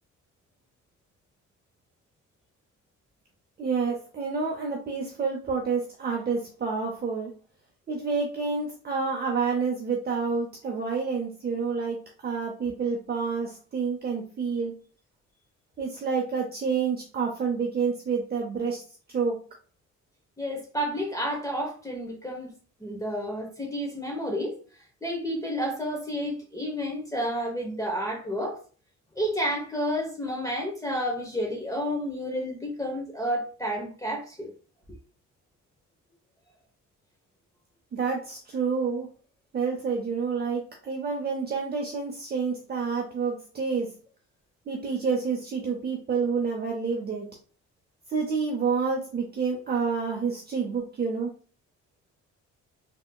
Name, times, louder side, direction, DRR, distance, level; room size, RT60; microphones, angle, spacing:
voice 1, 3.6-7.3 7.9-14.8 15.8-18.8 19.1-19.4 37.9-39.1 39.5-43.9 44.7-47.3 48.1-51.3, right 5 dB, 30° right, 0.6 m, -28 dB
voice 2, 20.4-22.5 22.8-24.6 25.0-28.6 29.1-34.5, equal, 10° left, 0.9 m, -30 dB
3.4 x 2.8 x 2.2 m
cardioid pair, 90°, 30 cm